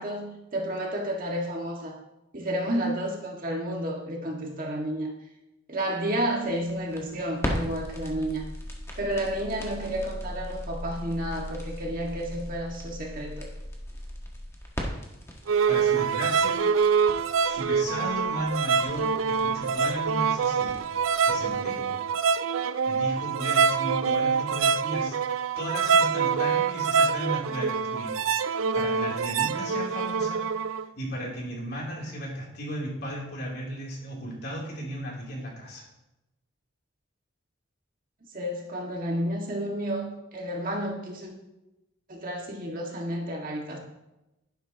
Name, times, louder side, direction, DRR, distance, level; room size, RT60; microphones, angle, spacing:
voice 1, 0.0-2.0 2.3-5.1 5.7-8.5 9.0-13.5 38.3-41.3 42.1-43.8, right 1 dB, 45° right, 0 dB, 1.8 m, -31 dB
sound 1, 6.4-21.6, equal, 15° left, 1.5 m, -38 dB
sound 2, 15.5-30.9, right 6 dB, 80° right, 0.4 m, -25 dB
voice 2, 15.7-16.6 17.4-20.8 21.3-22.0 22.9-28.2 28.7-30.4 31.0-35.8, equal, 55° left, -3 dB, 3.2 m, -35 dB
11.0 x 11.0 x 2.9 m, 0.94 s
head